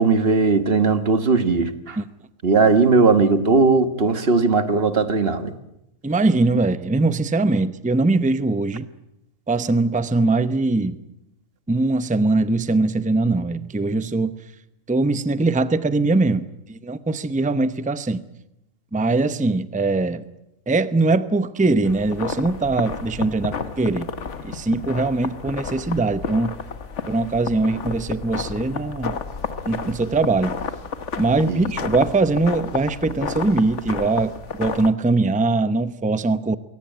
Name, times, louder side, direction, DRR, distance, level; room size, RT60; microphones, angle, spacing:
voice 1, 0.0-2.0 2.4-5.5 31.5-31.6, right 4 dB, 45° right, 10 dB, 1.6 m, -18 dB
voice 2, 6.0-8.9 9.5-11.0 11.7-14.4 14.9-18.2 18.9-20.2 20.7-24.1 24.4-26.6 27.1-29.2 29.6-30.5 31.2-34.3 34.6-36.6, right 3 dB, 10° right, 13 dB, 0.6 m, -21 dB
sound 1, 21.8-34.9, left 5 dB, 55° left, 1.5 m, -31 dB
22.0 x 18.0 x 9.2 m, 0.84 s
omnidirectional pair, 1.5 m